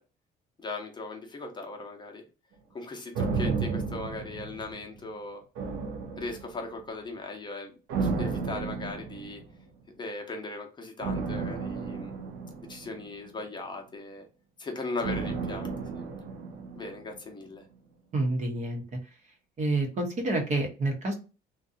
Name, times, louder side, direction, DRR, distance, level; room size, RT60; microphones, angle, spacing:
voice 1, 0.6-2.2 2.7-5.4 6.2-7.7 8.0-9.4 10.0-12.3 12.7-14.2 14.6-16.1 16.7-17.6, left 3 dB, 25° left, 3 dB, 0.7 m, -38 dB
sound 1, 3.1-5.1 5.6-6.8 7.9-9.6 11.0-13.4 15.0-17.2 17.5-17.6, right 4 dB, 75° right, 0.5 m, -33 dB
voice 2, 18.1-18.8 19.6-21.1, right 2 dB, 45° right, 3 dB, 0.9 m, -28 dB
2.6 x 2.2 x 2.5 m, 0.32 s
cardioid pair, 110°, 17 cm